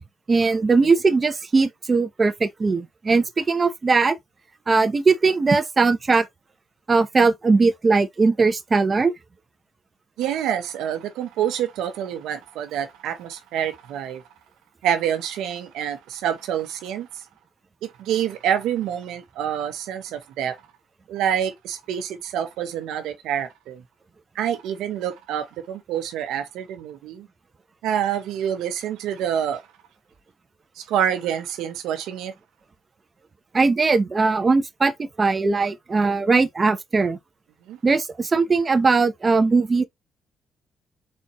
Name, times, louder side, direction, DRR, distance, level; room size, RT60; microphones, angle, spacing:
voice 1, 0.3-4.2 4.7-6.2 6.9-9.1 33.5-37.2 37.8-39.8, right 4 dB, 35° right, 0.8 m, -20 dB
voice 2, 10.2-14.2 14.8-17.2 17.8-20.6 21.1-23.8 24.3-27.3 27.8-29.6 30.8-32.3 37.7-37.8, right 9 dB, 85° right, 0.9 m, -27 dB
4.3 x 4.1 x 3.0 m
cardioid pair, 75°, 0 cm